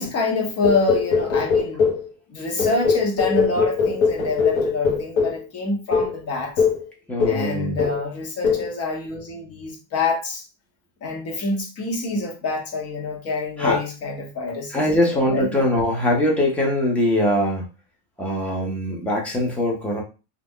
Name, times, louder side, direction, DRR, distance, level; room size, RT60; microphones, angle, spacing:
voice 1, 0.0-1.9 2.3-6.6 7.2-10.4 11.0-15.7, left 3 dB, 35° left, 0.9 m, -26 dB
sound 1, 0.6-2.1 2.6-5.4 5.9-6.1 6.6-6.8 7.2-7.5 7.8-8.1 8.4-8.7, left 5 dB, 85° left, 1.0 m, -21 dB
voice 2, 7.1-7.8 13.6-13.8 14.7-17.6 18.2-20.0, left 1 dB, 5° left, 0.6 m, -22 dB
2.4 x 2.0 x 3.6 m
supercardioid pair, 145°, 43 cm